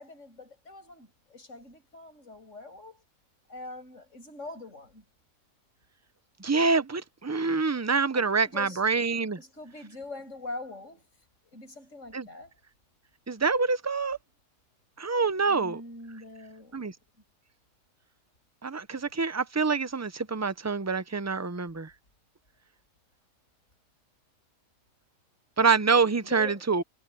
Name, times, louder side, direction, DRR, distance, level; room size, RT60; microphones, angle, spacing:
voice 1, 0.0-3.0 3.5-5.0 8.1-8.8 9.4-11.0 11.5-12.5 15.5-17.0 26.2-26.6, left 2 dB, 60° left, 7.7 m, -43 dB
voice 2, 6.4-9.4 12.1-12.3 13.3-14.2 15.0-15.8 16.7-16.9 18.6-21.9 25.6-26.8, right 4 dB, 25° right, 0.3 m, -26 dB
omnidirectional pair, 1.4 m